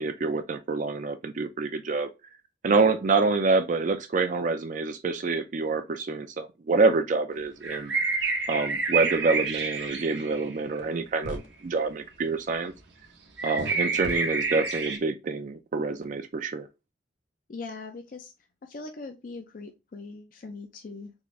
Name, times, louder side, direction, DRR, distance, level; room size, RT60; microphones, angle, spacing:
voice 1, 0.0-2.1 2.6-7.9 8.5-12.7 13.4-16.7, right 3 dB, 40° right, 0.4 m, -26 dB
sound 1, 7.6-10.6 13.4-15.0, right 4 dB, 70° right, 0.8 m, -28 dB
sound 2, 10.8-10.9 11.2-11.5 13.6-13.7 14.0-14.2, left 1 dB, 80° left, 0.8 m, -37 dB
voice 2, 17.5-18.3 18.6-21.1, left 3 dB, 45° left, 0.4 m, -41 dB
3.6 x 2.5 x 3.1 m
head